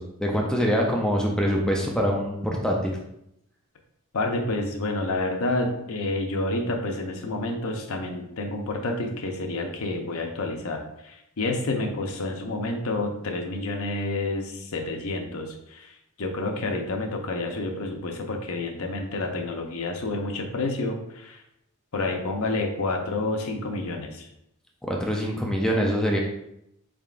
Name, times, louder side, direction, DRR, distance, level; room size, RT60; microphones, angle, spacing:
voice 1, 0.0-2.4 2.6-2.9 24.8-26.2, equal, 5° left, -1 dB, 0.4 m, -24 dB
voice 2, 4.1-15.9 16.2-21.4 21.9-24.3, left 2 dB, 75° left, 3 dB, 0.7 m, -29 dB
4.4 x 3.6 x 2.4 m, 0.80 s
head